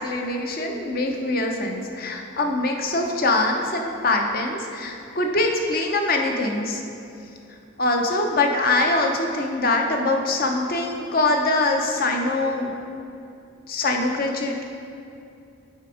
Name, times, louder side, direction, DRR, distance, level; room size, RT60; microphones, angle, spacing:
voice 1, 0.0-6.8 7.8-12.7 13.7-14.6, left 2 dB, 50° left, 2 dB, 0.7 m, -23 dB
8.2 x 3.4 x 5.0 m, 2.6 s
head